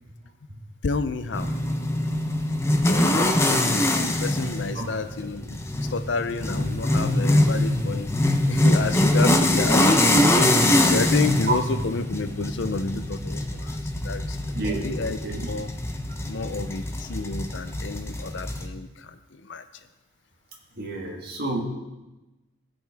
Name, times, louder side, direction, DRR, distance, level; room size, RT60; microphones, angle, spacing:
voice 1, 0.8-1.5 2.8-5.6 5.9-8.1 8.5-14.4 14.7-15.2 15.5-15.7 16.3-19.7, left 4 dB, 65° left, 10 dB, 0.6 m, -30 dB
sound 1, 1.3-18.7, left 1 dB, 15° left, 0.6 m, -23 dB
voice 2, 14.4-14.9 15.2-15.4 20.8-21.6, right 2 dB, 50° right, 0 dB, 1.6 m, -31 dB
15.5 x 5.4 x 3.5 m, 1.0 s
head